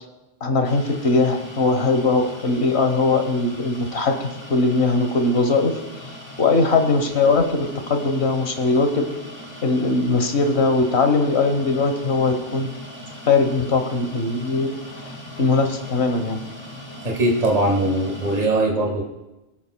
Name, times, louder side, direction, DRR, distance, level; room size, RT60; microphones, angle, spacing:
voice 1, 0.4-5.8 6.4-9.1 9.6-12.7 13.3-14.7 15.4-16.4, left 3 dB, 65° left, 5 dB, 1.4 m, -20 dB
sound 1, 0.6-18.5, left 1 dB, 25° left, 1.1 m, -39 dB
voice 2, 17.0-19.0, right 1 dB, 35° right, -1 dB, 1.7 m, -21 dB
23.5 x 8.5 x 2.3 m, 1.0 s
omnidirectional pair, 1.2 m